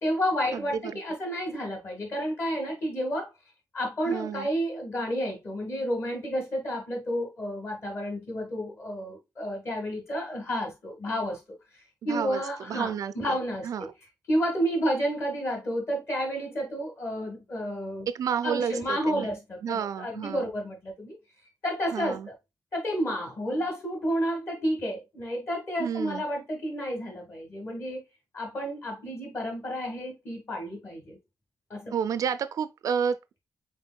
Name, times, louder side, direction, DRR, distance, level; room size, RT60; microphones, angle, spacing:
voice 1, 0.0-3.3 3.7-11.4 12.0-13.9 14.3-18.1 18.4-21.2 21.6-22.3 22.7-28.0 28.3-31.2 31.7-31.9, equal, 40° left, 2.0 m, -31 dB
voice 2, 0.5-1.0 4.1-4.5 12.1-12.4 12.7-13.4 13.6-13.9 18.1-19.3 19.6-20.5 21.9-22.3 25.8-26.2 31.9-33.4, right 7 dB, 60° right, 0.4 m, -30 dB
5.3 x 4.3 x 2.3 m
wide cardioid pair, 135°, 7 cm